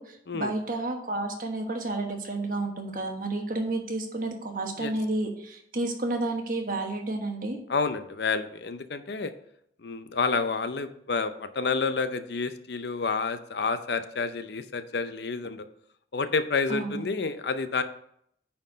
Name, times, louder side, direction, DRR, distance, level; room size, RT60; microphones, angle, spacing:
voice 1, 0.0-7.6 16.7-17.0, right 2 dB, 50° right, 3 dB, 1.4 m, -31 dB
voice 2, 7.7-9.3 9.8-15.7 16.1-17.8, left 4 dB, 70° left, 11 dB, 0.6 m, -29 dB
9.3 x 4.4 x 5.1 m, 0.69 s
head